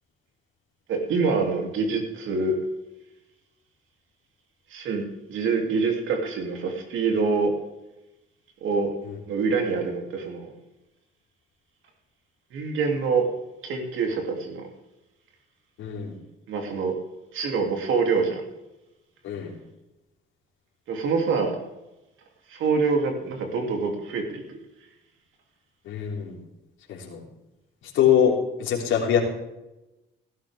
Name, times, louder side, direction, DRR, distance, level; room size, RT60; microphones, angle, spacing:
voice 1, 0.9-2.6 4.7-7.5 8.6-9.0 9.3-10.5 12.5-13.3 13.6-14.7 16.5-17.0 17.3-18.4 20.9-21.6 22.5-24.6, right 4 dB, 80° right, 3 dB, 3.0 m, -25 dB
voice 2, 15.8-16.1 19.2-19.5 25.8-26.4 26.9-27.2 27.9-29.2, left 8 dB, 90° left, -2 dB, 3.4 m, -23 dB
18.0 x 12.0 x 3.6 m, 0.96 s
cardioid pair, 90°, 20 cm